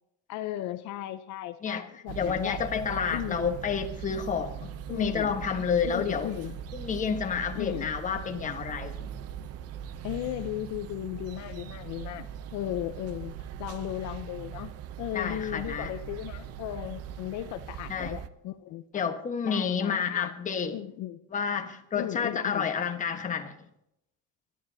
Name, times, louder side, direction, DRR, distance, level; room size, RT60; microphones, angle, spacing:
voice 1, 0.3-2.6 3.1-3.6 4.9-5.4 5.8-6.6 7.5-8.0 10.0-13.3 13.6-14.7 15.0-19.0 19.4-20.3 20.7-21.2 22.0-22.7, left 13 dB, 70° left, 11 dB, 0.8 m, -36 dB
voice 2, 2.1-6.3 6.7-9.0 15.1-15.9 17.9-18.2 18.9-20.8 21.3-23.5, left 6 dB, 25° left, 5 dB, 1.3 m, -30 dB
sound 1, 2.1-18.3, right 9 dB, 55° right, 0.7 m, -40 dB
22.5 x 11.0 x 2.8 m, 0.80 s
cardioid pair, 155°, 30 cm